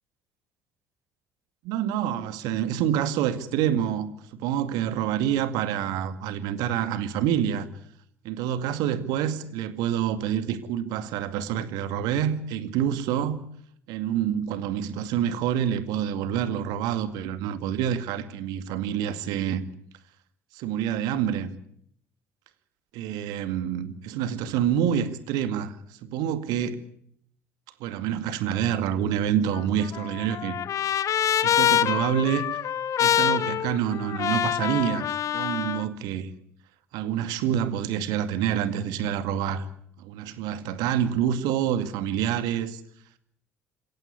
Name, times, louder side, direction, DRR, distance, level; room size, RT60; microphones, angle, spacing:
voice 1, 1.6-7.7 8.2-13.4 13.9-19.6 20.5-21.5 22.9-26.8 27.8-30.6 31.4-32.6 33.0-36.3 36.9-39.6 40.0-42.8, right 9 dB, 60° right, 2.1 m, -27 dB
Trumpet, 29.5-35.8, left 10 dB, 45° left, 1.2 m, -25 dB
27.0 x 15.5 x 9.8 m
figure-of-eight pair, 55°, 8 cm